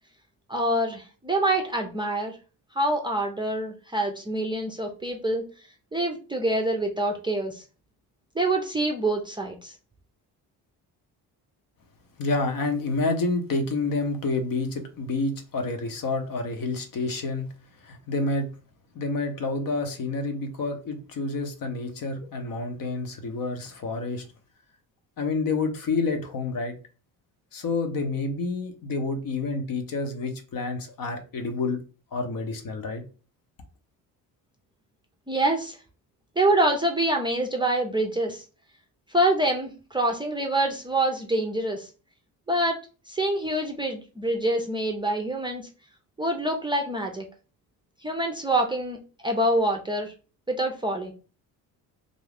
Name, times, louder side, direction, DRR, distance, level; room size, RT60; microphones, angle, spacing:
voice 1, 0.5-2.3 2.8-5.4 5.9-7.6 8.4-9.7 35.3-35.8 36.4-38.4 39.1-41.9 42.5-42.8 43.1-45.7 46.2-47.3 48.0-50.1 50.5-51.1, right 1 dB, 10° right, 0.5 m, -26 dB
voice 2, 12.2-17.5 17.8-18.5 18.9-24.3 25.2-26.8 27.5-31.8 32.1-33.0, left 3 dB, 50° left, 0.8 m, -28 dB
2.5 x 2.3 x 3.4 m
supercardioid pair, 75°, 42 cm